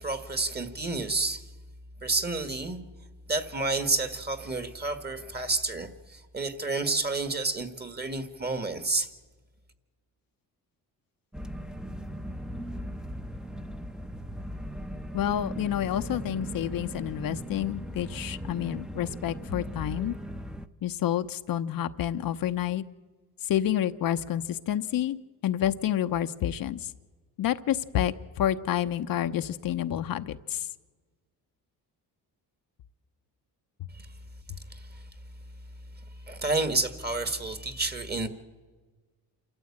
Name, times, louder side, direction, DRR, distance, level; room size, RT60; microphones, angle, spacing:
voice 1, 0.0-1.4 2.0-2.8 3.3-9.1 34.0-34.1 34.7-35.0 36.3-38.3, right 3 dB, 25° right, 1.8 m, -30 dB
sound 1, 11.3-20.7, equal, ahead, 0.8 m, -38 dB
voice 2, 15.1-20.1 20.8-22.8 23.5-26.9 27.4-30.6, left 11 dB, 60° left, 0.8 m, -29 dB
28.0 x 13.5 x 8.6 m
cardioid pair, 105°, 38 cm